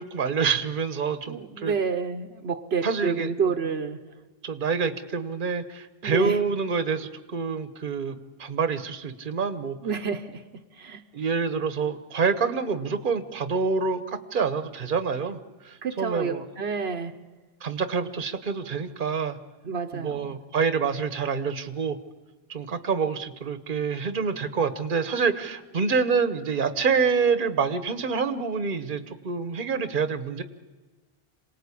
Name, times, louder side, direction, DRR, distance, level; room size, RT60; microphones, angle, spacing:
voice 1, 0.0-1.7 2.8-3.3 4.4-9.8 11.1-15.4 15.6-16.4 17.6-19.4 19.9-22.0 22.5-30.4, right 5 dB, 55° right, 1.2 m, -27 dB
voice 2, 1.3-4.0 6.0-6.4 9.8-11.0 15.8-17.2 19.6-20.4, right 5 dB, 80° right, 1.2 m, -29 dB
27.0 x 18.5 x 8.4 m
omnidirectional pair, 1.1 m